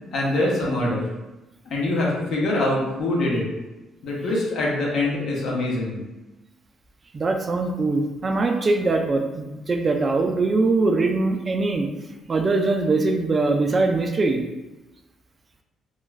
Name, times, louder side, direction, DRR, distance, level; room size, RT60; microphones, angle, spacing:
voice 1, 0.1-1.0 1.7-3.5 4.0-6.0, left 2 dB, 65° left, -4 dB, 0.8 m, -24 dB
voice 2, 7.1-11.9 12.3-14.4, right 3 dB, 30° right, 4 dB, 0.3 m, -22 dB
2.4 x 2.3 x 3.1 m, 1.1 s
cardioid pair, 110°, 0 cm